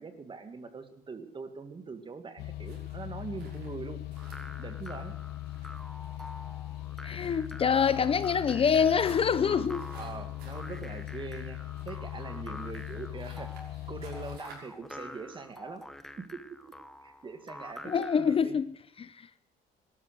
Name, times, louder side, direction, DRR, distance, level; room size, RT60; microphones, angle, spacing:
voice 1, 0.0-4.0 4.6-5.1 9.9-15.8 16.2-16.6 17.0-18.6, right 4 dB, 30° right, 2.1 m, -43 dB
sound 1, 2.4-14.4, left 16 dB, 85° left, 0.9 m, -40 dB
sound 2, 2.6-14.8, right 3 dB, 75° right, 5.9 m, -57 dB
sound 3, 4.2-18.4, left 1 dB, ahead, 0.9 m, -48 dB
voice 2, 7.0-9.9 17.8-18.7 19.0-19.3, left 6 dB, 35° left, 0.7 m, -26 dB
18.0 x 12.5 x 6.4 m
cardioid pair, 110°, 17 cm